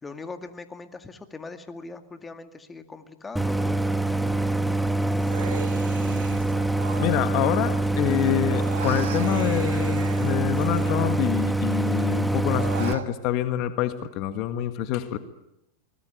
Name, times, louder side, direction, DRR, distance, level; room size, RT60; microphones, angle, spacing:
voice 1, 0.0-6.5, left 3 dB, 15° left, 7 dB, 2.1 m, -42 dB
Idling, 3.4-12.9, right 2 dB, 5° right, 1.4 m, -25 dB
Human voice, 5.2-7.9 8.1-11.6 12.0-13.1, right 10 dB, 80° right, 1.9 m, -39 dB
voice 2, 7.0-15.2, left 13 dB, 50° left, 9 dB, 1.7 m, -26 dB
24.0 x 20.5 x 9.2 m, 0.84 s
hypercardioid pair, 105°, 0 cm